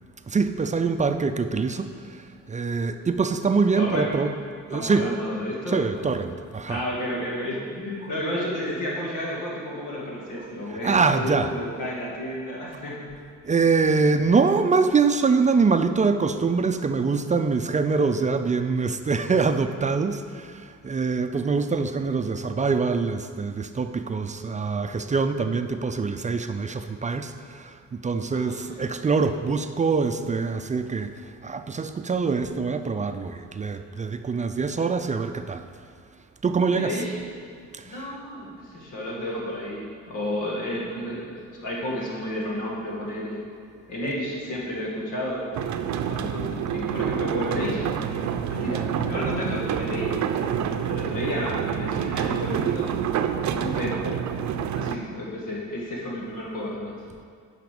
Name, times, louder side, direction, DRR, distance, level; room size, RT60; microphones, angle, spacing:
voice 1, 0.3-4.3 4.7-5.1 5.7-6.8 10.4-11.5 13.4-35.7 36.4-37.0 37.7-38.2, right 4 dB, 25° right, 8 dB, 0.4 m, -24 dB
voice 2, 3.8-4.2 4.7-5.9 6.7-13.1 28.3-28.8 36.7-37.1 37.8-43.4 43.9-45.5 45.9-47.8 48.5-50.2 50.8-53.0 53.5-54.2 54.7-56.9, left 1 dB, 90° left, -4 dB, 2.2 m, -31 dB
sound 1, 45.5-55.0, right 8 dB, 70° right, 0.6 m, -27 dB
9.3 x 5.7 x 5.2 m, 2.2 s
cardioid pair, 90°, 30 cm